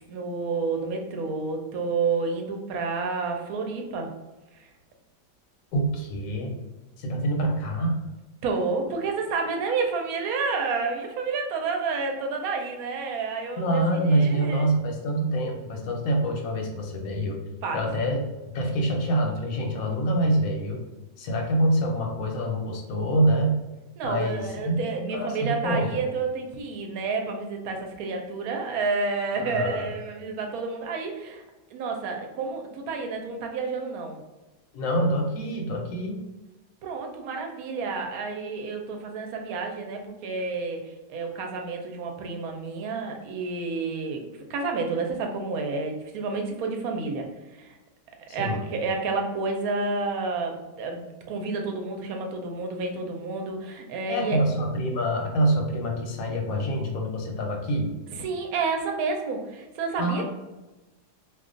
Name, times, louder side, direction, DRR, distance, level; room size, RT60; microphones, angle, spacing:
voice 1, 0.1-4.1 4.5-4.7 8.4-14.7 17.6-17.9 24.0-31.4 31.7-34.2 36.8-40.8 41.1-44.2 44.5-47.3 47.5-47.8 48.3-54.4 58.1-60.2, right 4 dB, 70° right, 3 dB, 0.9 m, -30 dB
voice 2, 5.7-6.6 7.0-8.0 13.6-17.4 17.7-18.2 18.5-20.8 21.2-23.6 24.0-26.0 29.4-29.9 34.7-36.2 48.3-48.7 54.1-57.9 60.0-60.2, right 1 dB, 65° left, 1 dB, 0.9 m, -26 dB
2.6 x 2.3 x 3.7 m, 1.1 s
omnidirectional pair, 1.8 m